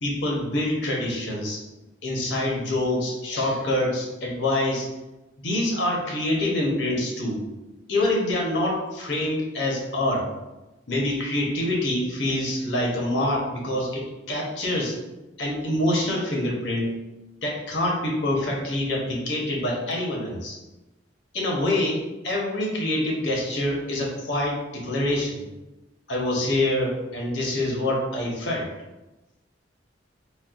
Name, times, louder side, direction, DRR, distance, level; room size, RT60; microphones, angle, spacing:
voice 1, 0.0-1.6 2.0-4.9 5.4-7.4 7.9-10.2 10.9-14.9 15.4-16.9 17.4-20.6 21.3-25.4 26.1-28.7, left 1 dB, 65° left, -2 dB, 0.9 m, -26 dB
4.2 x 2.2 x 2.4 m, 1.0 s
head